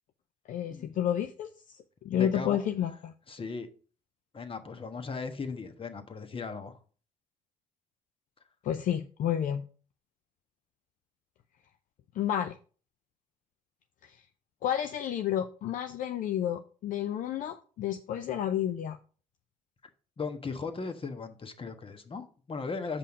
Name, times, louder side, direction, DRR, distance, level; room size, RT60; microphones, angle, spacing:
voice 1, 0.5-3.1 8.6-9.6 12.2-12.5 14.0-14.2 14.6-19.0, left 10 dB, 65° left, 0.5 m, -31 dB
voice 2, 2.1-2.6 3.3-3.7 4.3-6.8 20.2-23.0, left 4 dB, 40° left, 1.3 m, -37 dB
7.0 x 5.5 x 4.8 m
hypercardioid pair, 50°, 15 cm